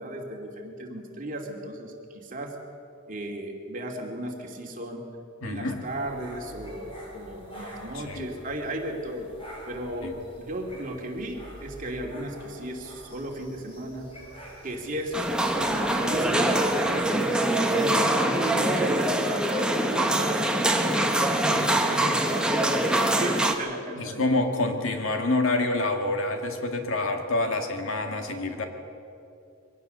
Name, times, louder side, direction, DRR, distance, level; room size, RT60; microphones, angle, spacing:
voice 1, 0.0-2.6 3.1-5.0 5.4-9.3 9.7-14.1 14.6-15.3 15.7-17.4 17.7-21.0 21.4-24.3, right 1 dB, 40° right, 1 dB, 2.7 m, -35 dB
voice 2, 5.4-5.8 7.9-8.3 10.0-10.1 24.0-28.7, left 2 dB, 70° left, 4 dB, 2.1 m, -27 dB
sound 1, 5.8-17.0, equal, 25° left, 5.4 m, -47 dB
sound 2, 15.1-23.5, right 1 dB, 5° right, 1.2 m, -24 dB
23.0 x 17.5 x 6.9 m, 2.7 s
head